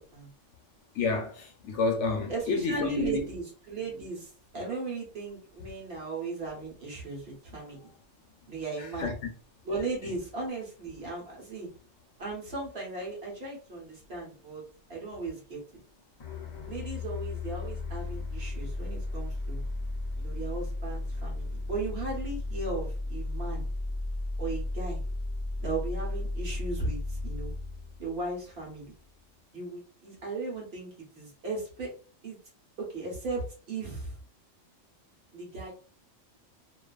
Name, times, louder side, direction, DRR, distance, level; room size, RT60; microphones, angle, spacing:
voice 1, 0.9-3.2 9.0-9.1, left 3 dB, 70° left, 0.9 m, -29 dB
voice 2, 2.3-7.8 8.5-9.1 9.6-11.7 12.2-14.6 14.9-15.8 16.7-19.6 20.2-23.7 24.4-25.0 25.6-27.6 28.0-28.9 29.5-31.9 32.2-32.4 32.8-34.1 35.3-35.7, right 3 dB, 55° right, 1.2 m, -37 dB
sound 1, 16.2-28.9, left 2 dB, 45° left, 0.5 m, -34 dB
2.7 x 2.3 x 2.3 m
omnidirectional pair, 1.3 m